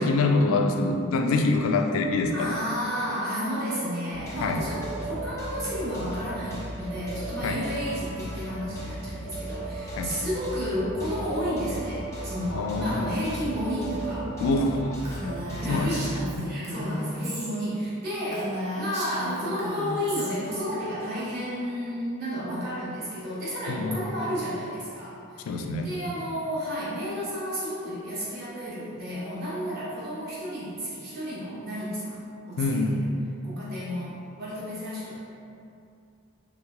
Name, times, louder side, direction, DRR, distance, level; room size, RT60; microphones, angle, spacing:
voice 1, 0.0-2.5 4.4-4.6 7.4-7.6 10.0-10.1 12.6-13.0 14.4-14.9 15.7-16.5 23.7-24.0 25.5-25.9 32.6-33.0, left 3 dB, 80° left, 5 dB, 0.3 m, -25 dB
voice 2, 2.3-14.3 15.6-16.1 16.4-32.9 33.4-35.2, equal, 50° right, -9 dB, 1.0 m, -32 dB
sound 1, 4.1-16.0, right 1 dB, 15° left, 0.5 m, -36 dB
Female speech woman speaking, 15.0-17.5 17.8-17.9 18.3-20.3, equal, 30° right, 0.5 m, -34 dB
3.5 x 3.0 x 2.3 m, 2.6 s
head